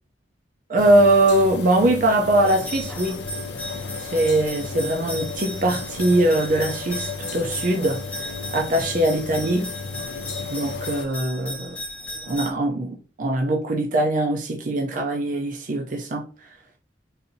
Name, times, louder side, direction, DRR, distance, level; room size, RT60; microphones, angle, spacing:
voice 1, 0.7-3.2 4.0-9.7 10.5-11.8 12.3-16.3, right 1 dB, 45° right, 0.5 m, -21 dB
sound 1, 0.8-11.1, left 4 dB, 65° left, 0.5 m, -34 dB
sound 2, 2.5-12.5, equal, 5° left, 0.5 m, -36 dB
4.0 x 2.6 x 2.6 m
head